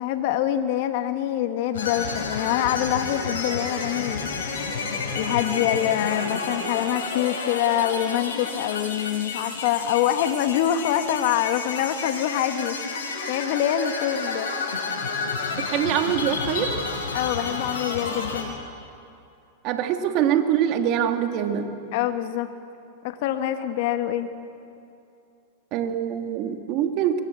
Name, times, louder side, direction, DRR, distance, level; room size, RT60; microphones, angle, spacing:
voice 1, 0.0-4.3 5.2-12.7 13.3-14.5 17.1-18.6 21.9-22.5 23.0-24.3, left 11 dB, 60° left, 8 dB, 1.5 m, -25 dB
sound 1, 1.7-18.4, left 4 dB, 85° left, 5.3 m, -30 dB
voice 2, 15.7-16.7 19.6-21.7 25.7-27.2, right 9 dB, 45° right, 6 dB, 2.1 m, -24 dB
22.5 x 19.0 x 8.3 m, 2.6 s
hypercardioid pair, 125°, 0 cm